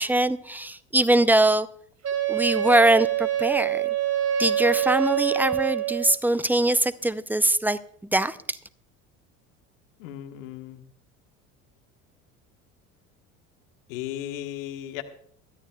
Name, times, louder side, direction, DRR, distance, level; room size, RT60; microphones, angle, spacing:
voice 1, 0.0-1.7 2.3-3.8 4.4-7.8 8.1-8.6, right 1 dB, 5° right, 0.6 m, -22 dB
Wind instrument woodwind instrument, 2.0-6.2, right 11 dB, 40° right, 2.9 m, -25 dB
voice 2, 10.0-10.8 13.9-15.0, left 12 dB, 70° left, 1.5 m, -35 dB
22.0 x 13.5 x 2.4 m
hypercardioid pair, 65°, 41 cm